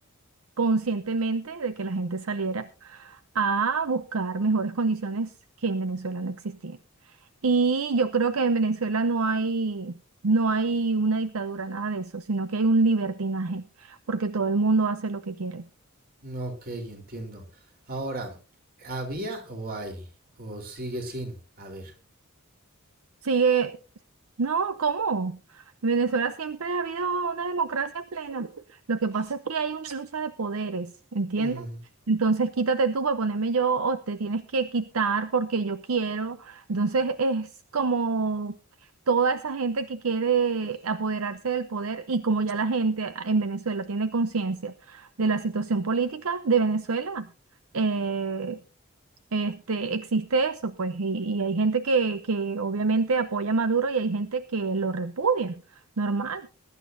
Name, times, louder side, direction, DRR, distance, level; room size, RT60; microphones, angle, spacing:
voice 1, 0.6-5.3 5.6-6.8 7.4-9.9 10.2-15.7 23.2-23.8 24.4-31.6 32.1-38.5 39.1-47.3 47.7-48.6 49.3-55.6 56.0-56.5, right 4 dB, 70° right, 12 dB, 0.7 m, -26 dB
voice 2, 16.2-18.4 18.8-20.1 20.4-21.9 31.3-31.8, right 1 dB, 45° right, 3 dB, 3.6 m, -36 dB
22.0 x 11.5 x 2.6 m, 0.33 s
head